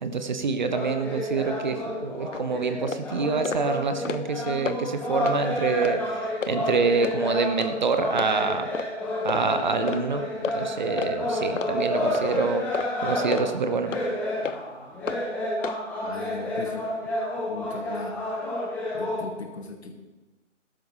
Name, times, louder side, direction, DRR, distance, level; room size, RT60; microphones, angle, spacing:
voice 1, 0.0-8.7 9.2-13.9, right 4 dB, 35° right, 8 dB, 0.9 m, -26 dB
sound 1, 0.7-19.3, left 1 dB, 5° left, 1.5 m, -30 dB
sound 2, 2.3-2.4 2.9-3.0 3.5-3.6 3.9-4.3 4.7-4.8 5.2-5.4 5.8-6.0 6.4-6.5 7.0-7.2 7.6-7.7 8.2-8.3 8.7-8.9 9.3-9.5 9.9-10.0 10.4-10.6 11.0-11.1 11.6-11.7 12.1-12.3 12.7-12.9 13.3-13.5 13.9-14.0 14.4-14.6 15.1-15.2 15.6-15.8, left 6 dB, 80° left, 0.8 m, -31 dB
voice 2, 16.0-16.9 17.5-18.2 18.9-19.9, left 3 dB, 60° left, 4 dB, 2.0 m, -38 dB
15.0 x 12.5 x 3.3 m, 1.1 s
figure-of-eight pair, 150°, 38 cm